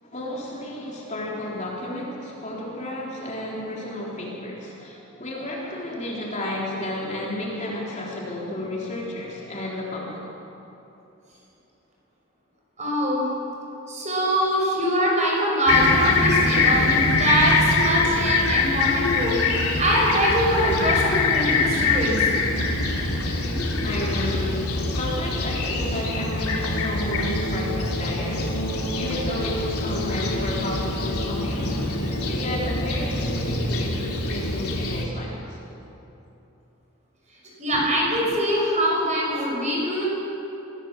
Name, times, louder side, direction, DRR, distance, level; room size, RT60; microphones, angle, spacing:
voice 1, 0.0-10.2 23.8-28.7 28.9-35.6, left 1 dB, 30° left, -4 dB, 3.7 m, -32 dB
voice 2, 12.8-13.2 13.9-22.2 23.5-23.8 37.6-40.1, equal, 30° right, -2 dB, 5.6 m, -23 dB
Fixed-wing aircraft airplane, 15.7-35.0, left 3 dB, 85° left, 3.2 m, -24 dB
24.5 x 16.0 x 7.5 m, 3.0 s
head